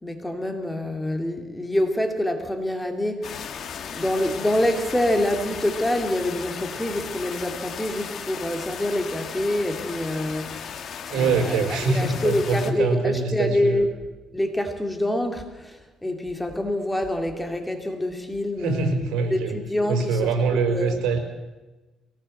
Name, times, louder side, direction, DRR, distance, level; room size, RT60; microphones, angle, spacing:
voice 1, 0.0-3.4 3.9-10.7 11.1-13.9 14.3-21.0, left 1 dB, 10° left, 4 dB, 2.5 m, -26 dB
sound 1, 3.2-12.7, left 7 dB, 50° left, 2.1 m, -36 dB
voice 2, 11.1-13.8 18.6-19.6 19.9-21.2, right 4 dB, 80° right, 5 dB, 5.4 m, -24 dB
23.0 x 18.5 x 7.8 m, 1.2 s
cardioid pair, 125°, 0 cm